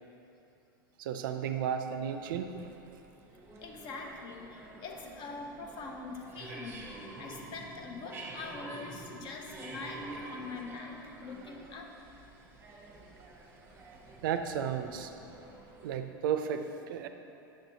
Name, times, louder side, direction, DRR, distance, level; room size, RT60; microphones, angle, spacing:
voice 1, 1.0-2.6 14.2-15.1 15.8-17.1, right 8 dB, 65° right, 7 dB, 0.4 m, -33 dB
sound 1, 1.3-16.0, right 2 dB, 20° right, 0.8 m, -49 dB
voice 2, 3.6-12.0 13.6-14.2, left 3 dB, 40° left, 2 dB, 0.7 m, -44 dB
6.3 x 6.1 x 2.7 m, 2.8 s
hypercardioid pair, 105°, 12 cm